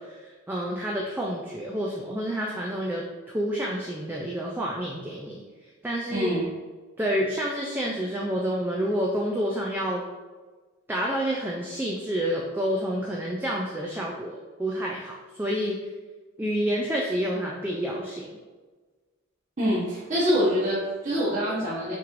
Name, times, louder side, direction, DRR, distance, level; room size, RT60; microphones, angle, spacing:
voice 1, 0.0-5.4 5.8-6.3 7.0-10.0 10.9-15.8 16.4-18.3, equal, 10° right, -3 dB, 0.3 m, -29 dB
voice 2, 6.1-6.5 19.6-21.9, equal, 35° right, -9 dB, 1.0 m, -25 dB
5.9 x 3.1 x 2.5 m, 1.3 s
head